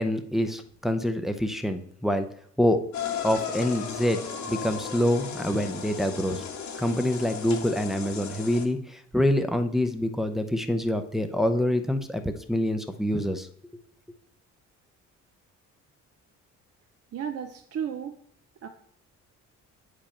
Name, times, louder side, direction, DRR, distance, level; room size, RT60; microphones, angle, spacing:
voice 1, 0.0-2.3 2.6-2.8 3.2-6.4 6.8-13.5, left 1 dB, ahead, 7 dB, 0.7 m, -26 dB
sound 1, 2.9-8.6, left 7 dB, 70° left, 1.3 m, -35 dB
voice 2, 17.1-18.2 18.6-18.7, right 8 dB, 50° right, 6 dB, 0.7 m, -33 dB
8.5 x 5.2 x 4.4 m, 0.64 s
cardioid pair, 90°, 30 cm